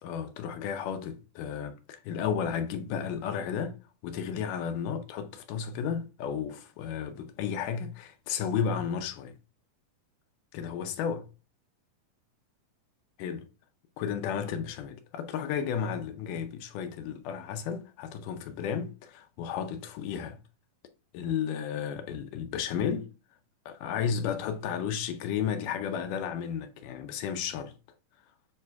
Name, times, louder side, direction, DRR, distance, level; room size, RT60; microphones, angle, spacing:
voice 1, 0.0-3.8 4.0-9.3 10.5-11.3 13.2-13.5 14.0-20.4 21.1-23.1 23.7-27.7, left 7 dB, 80° left, 2.2 m, -33 dB
7.7 x 3.2 x 4.6 m
omnidirectional pair, 3.8 m